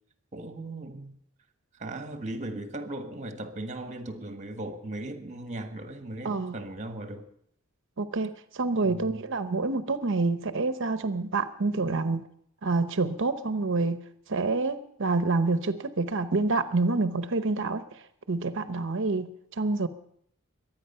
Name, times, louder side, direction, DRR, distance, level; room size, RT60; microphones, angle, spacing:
voice 1, 0.3-1.2 1.8-7.3 8.8-9.2, right 1 dB, 35° right, 1.5 m, -38 dB
voice 2, 6.2-6.6 8.0-12.2 12.6-14.0 14.3-17.8 18.3-19.3 19.6-19.9, right 3 dB, 60° right, 0.9 m, -27 dB
23.0 x 9.5 x 5.6 m
head